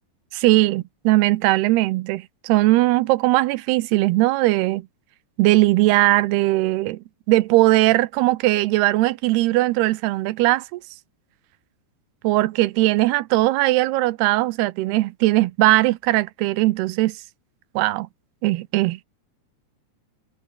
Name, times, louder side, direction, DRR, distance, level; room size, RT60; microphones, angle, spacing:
voice 1, 0.3-4.9 5.4-10.8 12.2-17.2 17.8-18.1 18.4-19.0, right 18 dB, 90° right, 2.7 m, -19 dB
omnidirectional pair, 4.7 m